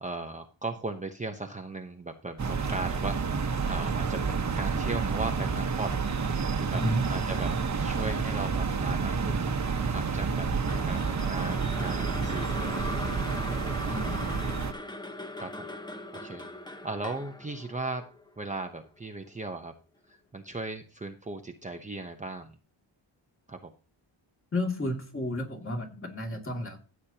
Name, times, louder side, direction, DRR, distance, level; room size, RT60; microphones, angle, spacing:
voice 1, 0.0-6.1 6.6-6.8 7.1-7.5 7.8-10.5 10.8-13.1 15.4-15.7 16.1-18.0 18.4-19.7 20.1-22.6 23.5-23.7, right 3 dB, 15° right, 4 dB, 0.9 m, -37 dB
sound 1, 2.4-14.7, right 5 dB, 35° right, 1.3 m, -29 dB
voice 2, 6.7-7.1 13.8-14.4 24.5-26.8, left 1 dB, 25° left, 1 dB, 2.7 m, -32 dB
sound 2, 10.7-18.9, left 2 dB, 10° left, 1.1 m, -40 dB
15.0 x 8.4 x 2.9 m, 0.36 s
cardioid pair, 110°, 48 cm